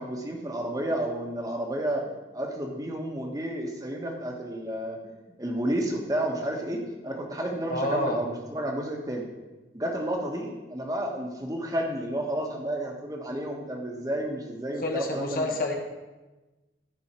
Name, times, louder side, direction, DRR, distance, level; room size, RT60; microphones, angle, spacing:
voice 1, 0.0-5.1 5.4-9.3 9.7-15.6, right 1 dB, 20° right, 0 dB, 1.4 m, -31 dB
voice 2, 7.7-8.2 14.8-15.7, left 2 dB, 50° left, 2 dB, 1.5 m, -28 dB
14.5 x 5.5 x 4.5 m, 1.1 s
head